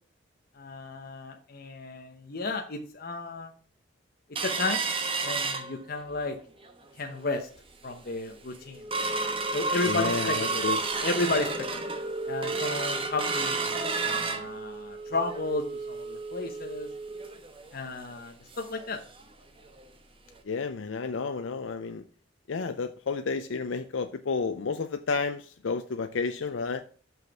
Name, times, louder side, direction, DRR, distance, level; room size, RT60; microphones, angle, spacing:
voice 1, 0.6-3.5 4.4-4.8 5.2-6.4 7.0-7.5 7.8-8.8 9.5-10.6 11.0-11.7 12.3-16.9 17.7-19.0, left 3 dB, 50° left, 1.0 m, -33 dB
sound 1, 4.4-6.2 6.6-6.7 7.1-7.4 7.9-8.0 8.3-18.9 19.2-19.3 19.7-19.8 20.4-20.5, right 3 dB, 30° right, 1.1 m, -31 dB
voice 2, 9.9-10.8 20.5-22.0 22.5-26.8, left 4 dB, 80° left, 0.5 m, -31 dB
6.0 x 5.6 x 6.8 m
head